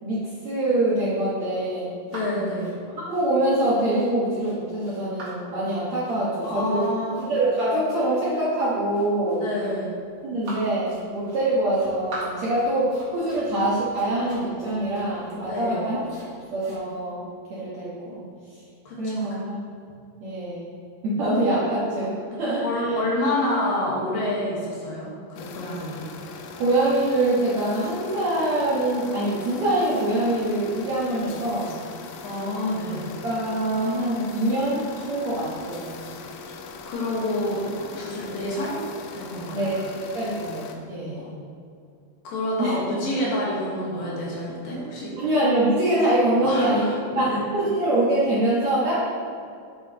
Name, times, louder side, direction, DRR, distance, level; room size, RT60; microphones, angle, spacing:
voice 1, 0.0-1.9 3.0-6.9 7.2-9.4 10.2-16.1 16.5-17.2 17.5-18.2 18.5-18.6 19.0-19.6 20.2-20.8 21.0-23.0 26.6-31.7 33.2-36.0 39.5-41.3 42.6-42.7 45.2-47.2 47.5-48.9, right 1 dB, 65° right, -9 dB, 1.8 m, -24 dB
voice 2, 2.1-2.7 6.5-7.2 9.4-9.9 15.4-15.9 18.9-19.3 22.2-26.1 32.2-33.1 36.8-38.8 39.1-39.7 41.2-41.3 42.2-45.1 46.4-47.4, left 1 dB, 65° left, -5 dB, 2.7 m, -28 dB
sound 1, 2.1-16.8, right 1 dB, 40° right, 2.3 m, -43 dB
sound 2, 25.4-40.8, left 5 dB, 85° left, 2.0 m, -40 dB
8.5 x 8.0 x 2.8 m, 2.4 s
omnidirectional pair, 4.7 m